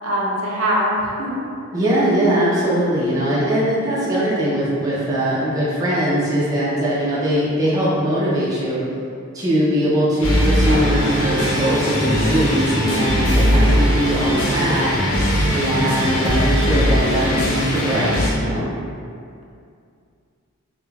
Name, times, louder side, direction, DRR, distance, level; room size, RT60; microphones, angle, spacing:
voice 1, 0.0-1.4, equal, 70° right, -4 dB, 0.5 m, -22 dB
voice 2, 1.7-8.8 9.3-14.9 15.5-18.6, right 1 dB, 15° right, -8 dB, 0.3 m, -21 dB
sound 1, 10.2-18.3, equal, 70° left, 0.5 m, -19 dB
2.3 x 2.0 x 3.1 m, 2.4 s
head